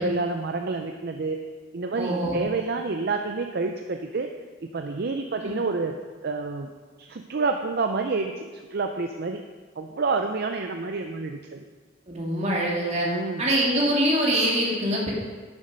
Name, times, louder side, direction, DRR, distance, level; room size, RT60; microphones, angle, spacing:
voice 1, 0.0-1.4 1.7-4.3 4.6-5.9 6.2-6.7 7.0-9.4 9.8-11.6 13.0-13.5, right 3 dB, 55° right, 5 dB, 0.5 m, -28 dB
voice 2, 2.0-2.4 5.4-5.5 12.1-13.1 13.4-15.1, right 1 dB, 35° right, -3 dB, 2.1 m, -24 dB
10.5 x 7.0 x 5.2 m, 1.5 s
head